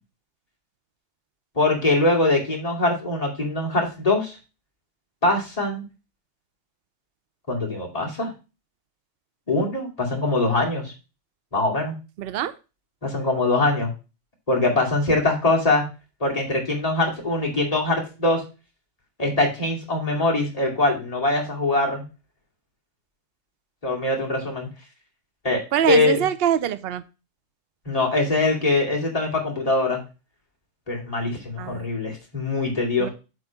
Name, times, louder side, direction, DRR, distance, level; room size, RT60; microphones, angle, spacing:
voice 1, 1.6-4.4 5.2-5.9 7.5-8.3 9.5-10.9 11.5-11.9 13.0-13.9 14.5-15.8 16.2-18.4 19.2-22.0 23.8-24.7 25.4-26.2 27.9-30.0 30.9-33.1, left 2 dB, 30° left, -2 dB, 2.6 m, -22 dB
voice 2, 12.2-12.5 25.7-27.0 31.6-31.8 33.0-33.1, right 10 dB, 60° right, 12 dB, 0.8 m, -24 dB
8.0 x 3.8 x 5.8 m, 0.30 s
omnidirectional pair, 1.3 m